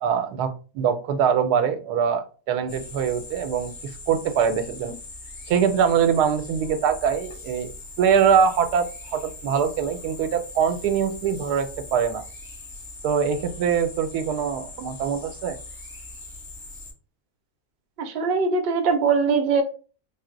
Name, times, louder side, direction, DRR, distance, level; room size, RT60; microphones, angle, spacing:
voice 1, 0.0-5.0 5.5-7.7 8.0-12.2 13.0-15.6, right 7 dB, 85° right, 9 dB, 1.2 m, -23 dB
sound 1, 2.7-16.9, left 2 dB, 45° left, 1.7 m, -41 dB
voice 2, 18.0-19.6, right 4 dB, 55° right, 5 dB, 0.7 m, -21 dB
4.3 x 2.0 x 3.7 m, 0.37 s
omnidirectional pair, 1.7 m